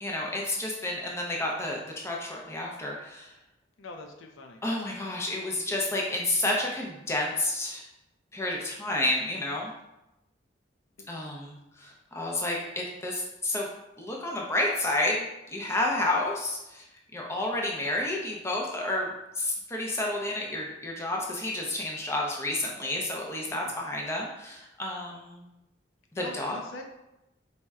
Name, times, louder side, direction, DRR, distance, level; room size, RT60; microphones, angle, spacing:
voice 1, 0.0-3.3 4.6-7.8 8.3-9.7 11.1-13.7 14.0-15.3 15.5-16.8 17.1-25.5 26.2-26.6, left 1 dB, 15° left, -2 dB, 0.5 m, -30 dB
voice 2, 3.8-4.6 23.4-23.7 26.2-26.8, left 2 dB, 85° left, 3 dB, 0.5 m, -43 dB
4.2 x 2.1 x 3.5 m, 0.91 s
head